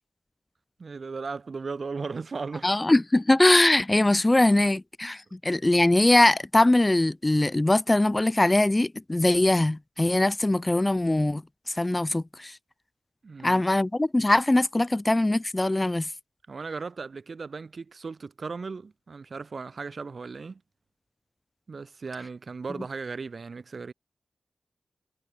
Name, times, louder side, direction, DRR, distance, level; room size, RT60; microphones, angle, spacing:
voice 1, 0.8-2.7 13.2-13.6 16.5-20.6 21.7-23.9, right 4 dB, 60° right, 1.4 m, -36 dB
voice 2, 2.6-11.4 11.8-12.5 13.4-16.1, left 2 dB, 25° left, 0.4 m, -22 dB
cardioid pair, 55°, 0 cm